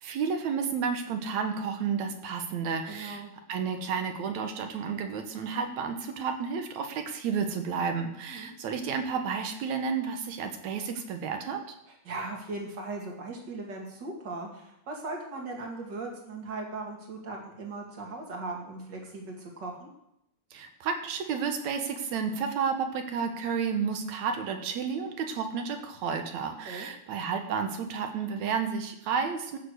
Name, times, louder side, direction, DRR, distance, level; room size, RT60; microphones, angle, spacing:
voice 1, 0.0-3.2 3.5-11.6 20.5-29.6, right 6 dB, 70° right, 6 dB, 2.4 m, -31 dB
voice 2, 2.9-3.3 8.3-8.5 11.9-19.9 26.6-26.9, right 3 dB, 40° right, 0 dB, 2.6 m, -38 dB
15.0 x 6.7 x 6.5 m, 0.80 s
omnidirectional pair, 3.5 m